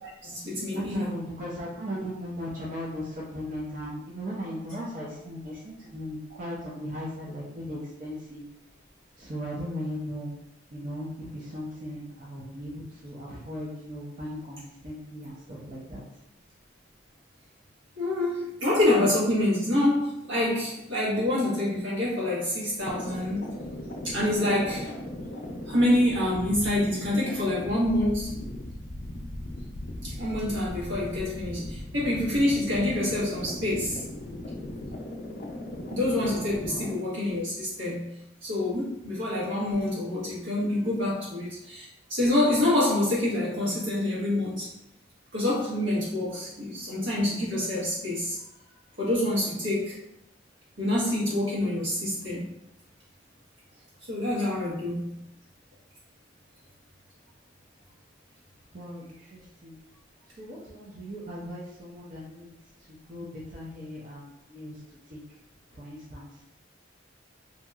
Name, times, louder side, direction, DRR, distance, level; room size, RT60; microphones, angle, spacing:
voice 1, 0.0-1.1 18.0-23.5 24.0-24.9 25.7-28.3 30.0-34.0 35.9-38.2 38.4-44.7 45.3-48.4 49.0-50.0 50.8-52.4 54.1-55.2, left 1 dB, 85° right, -8 dB, 1.3 m, -26 dB
voice 2, 0.7-8.5 9.2-10.4 10.7-16.0 36.6-37.0 58.7-59.8 60.4-62.5 62.9-64.8 65.1-65.2 65.7-66.3, equal, 40° right, -6 dB, 0.5 m, -37 dB
sound 1, 22.8-36.9, left 1 dB, 50° left, 0.4 m, -38 dB
2.9 x 2.7 x 2.3 m, 0.84 s
head